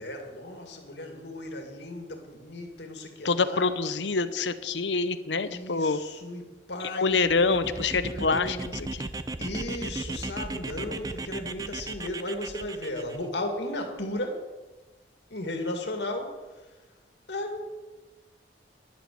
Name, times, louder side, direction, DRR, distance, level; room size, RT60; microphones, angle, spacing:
voice 1, 0.0-3.7 5.5-8.7 9.4-14.5 15.3-16.7 17.3-17.7, left 1 dB, 70° left, 3 dB, 2.2 m, -35 dB
voice 2, 3.2-6.0 6.8-9.1, left 4 dB, 90° left, 12 dB, 0.8 m, -26 dB
sound 1, 7.1-13.2, right 2 dB, 20° right, 0.6 m, -36 dB
11.0 x 8.5 x 7.7 m, 1.2 s
head